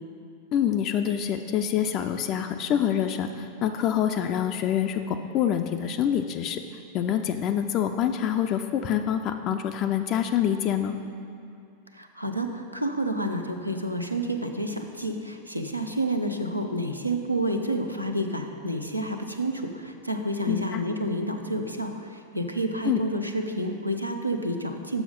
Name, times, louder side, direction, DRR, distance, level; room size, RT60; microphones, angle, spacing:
voice 1, 0.5-6.6 6.9-11.0 20.5-20.8 22.8-23.0, left 9 dB, 35° left, 6 dB, 0.3 m, -26 dB
voice 2, 11.9-25.0, right 1 dB, 90° right, 4 dB, 0.5 m, -29 dB
7.0 x 6.0 x 5.3 m, 2.4 s
figure-of-eight pair, 90°, 0 cm